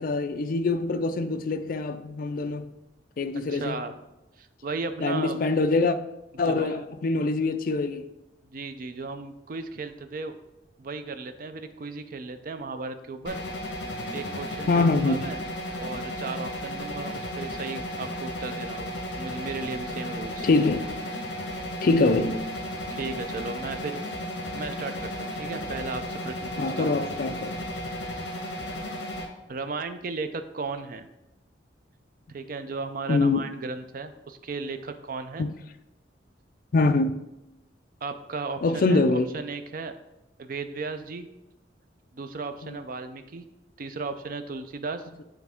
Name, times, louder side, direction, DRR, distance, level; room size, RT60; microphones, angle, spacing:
voice 1, 0.0-2.7 3.2-3.8 5.0-6.0 6.4-8.1 14.7-15.2 20.4-20.9 21.8-22.4 26.6-27.6 33.1-33.4 35.4-35.5 36.7-37.2 38.6-39.3 42.6-42.8, left 3 dB, 50° left, 0.4 m, -24 dB
voice 2, 3.5-3.9 4.4-5.4 6.5-6.8 8.5-10.3 10.8-13.4 14.1-15.4 15.8-20.5 22.9-24.0 24.5-26.9 29.5-31.1 32.3-35.4 38.0-39.0 39.3-39.9 40.4-41.3 42.1-43.4 43.8-45.1, right 4 dB, 50° right, 0.4 m, -35 dB
sound 1, 13.3-29.3, left 1 dB, 70° left, 1.0 m, -34 dB
8.3 x 3.4 x 3.5 m
head